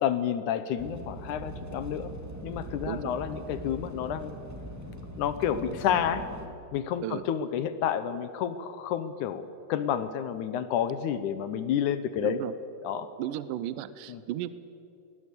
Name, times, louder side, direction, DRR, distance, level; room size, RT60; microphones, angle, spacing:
voice 1, 0.0-2.1 2.4-4.3 5.2-6.3 6.7-12.4 12.8-13.1 14.1-14.2, left 9 dB, 70° left, 12 dB, 2.1 m, -30 dB
sound 1, 0.8-6.5, equal, 15° right, 0.5 m, -41 dB
voice 2, 13.2-14.5, right 13 dB, 75° right, 14 dB, 2.2 m, -34 dB
20.0 x 20.0 x 8.3 m, 2.6 s
omnidirectional pair, 4.2 m